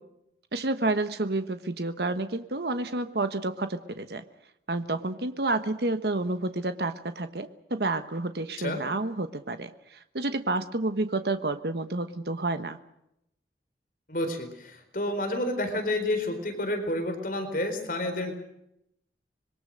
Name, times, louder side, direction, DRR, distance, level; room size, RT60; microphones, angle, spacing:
voice 1, 0.5-4.2 4.7-12.8, right 2 dB, 70° right, 9 dB, 1.2 m, -30 dB
voice 2, 14.1-18.3, left 1 dB, 50° left, 6 dB, 4.3 m, -30 dB
26.0 x 22.5 x 6.5 m, 0.80 s
head